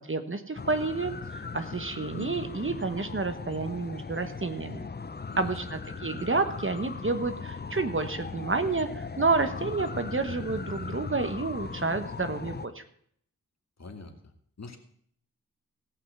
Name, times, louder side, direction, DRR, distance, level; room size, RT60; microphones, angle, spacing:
voice 1, 0.0-4.8 5.4-12.8, right 3 dB, 40° right, 8 dB, 1.3 m, -30 dB
sound 1, 0.6-12.7, left 4 dB, 30° left, 0.7 m, -38 dB
voice 2, 13.8-14.1 14.6-14.8, left 3 dB, 50° left, 5 dB, 2.1 m, -43 dB
17.0 x 5.8 x 8.0 m, 0.65 s
wide cardioid pair, 80°, 33 cm